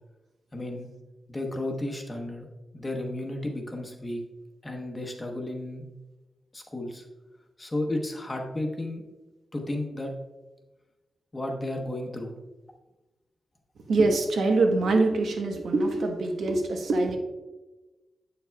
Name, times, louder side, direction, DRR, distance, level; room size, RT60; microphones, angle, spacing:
voice 1, 0.5-0.9 1.3-2.5 2.7-4.2 4.6-5.8 6.5-7.1 7.6-9.0 9.5-10.1 11.3-12.3, left 1 dB, 20° left, 0.9 m, -33 dB
voice 2, 13.9-17.2, right 2 dB, 75° right, 1.0 m, -24 dB
8.5 x 7.0 x 2.2 m
wide cardioid pair, 180°, 0 cm